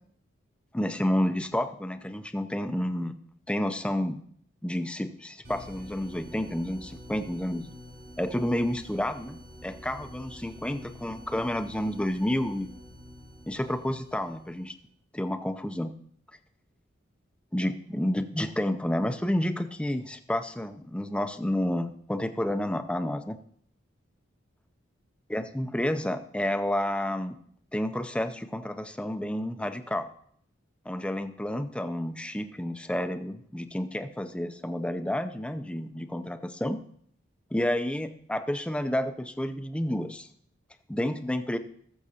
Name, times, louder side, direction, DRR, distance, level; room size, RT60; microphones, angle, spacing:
voice 1, 0.7-3.1 3.5-4.2 4.6-7.7 8.2-12.7 13.5-14.7 15.1-15.9 17.5-23.4 25.3-27.4 27.7-30.1 30.9-36.8 37.5-40.3 40.9-41.6, left 1 dB, 5° left, 9 dB, 0.5 m, -30 dB
sound 1, 5.4-14.8, equal, 65° right, 4.8 m, -47 dB
18.0 x 7.2 x 2.8 m, 0.63 s
head